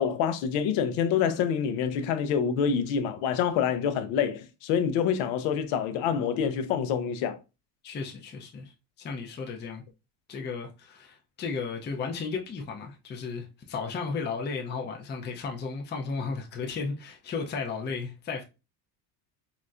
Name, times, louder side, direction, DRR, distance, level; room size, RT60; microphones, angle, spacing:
voice 1, 0.0-7.4, left 7 dB, 75° left, 0.7 m, -26 dB
voice 2, 7.8-8.7 9.0-9.8 10.3-18.4, left 5 dB, 25° left, 0.6 m, -34 dB
4.0 x 2.1 x 2.4 m
supercardioid pair, 90°, 47 cm